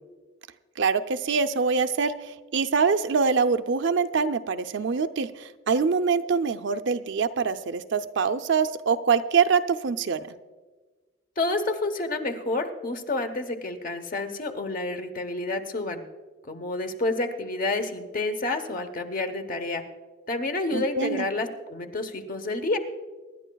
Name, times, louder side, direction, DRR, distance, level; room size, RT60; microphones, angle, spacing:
voice 1, 0.8-10.3 20.7-21.2, right 5 dB, 60° right, 9 dB, 0.5 m, -24 dB
voice 2, 11.4-16.0 16.5-19.8 20.3-22.8, left 2 dB, 45° left, 7 dB, 0.9 m, -29 dB
24.5 x 11.0 x 2.3 m, 1.3 s
head